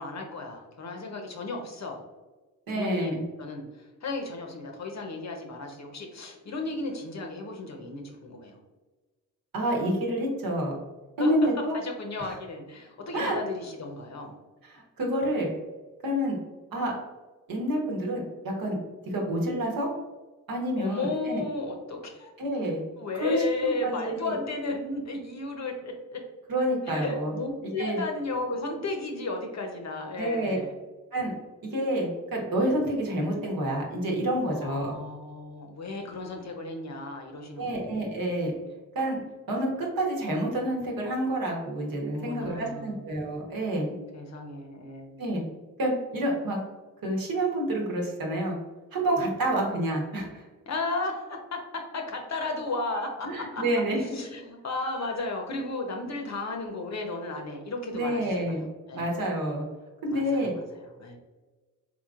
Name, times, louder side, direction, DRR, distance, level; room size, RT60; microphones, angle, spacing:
voice 1, 0.0-2.0 2.7-3.6 4.0-8.6 11.2-11.3 11.7-14.3 20.8-22.3 23.0-26.2 26.9-30.7 34.5-38.3 42.1-43.0 44.1-45.3 50.7-53.6 54.1-58.5 58.9-59.1 60.1-60.6 61.0-61.2, left 3 dB, 40° left, 3 dB, 0.8 m, -34 dB
voice 2, 2.7-3.2 9.5-10.7 11.2-11.8 12.2-12.4 13.1-13.4 14.6-15.5 16.0-16.4 16.7-16.9 17.5-18.8 19.1-19.9 20.5-21.4 22.4-22.8 23.2-24.3 26.5-27.3 27.6-28.0 30.2-30.6 31.1-31.3 31.7-34.9 37.6-38.5 38.9-39.2 39.5-43.9 45.2-45.4 45.8-46.6 47.0-48.5 48.9-50.4 52.8-54.0 54.6-55.2 57.9-58.6 58.9-59.6 60.0-60.6, right 1 dB, 55° right, 0 dB, 1.2 m, -28 dB
3.7 x 3.0 x 2.4 m, 1.3 s
hypercardioid pair, 40°, 42 cm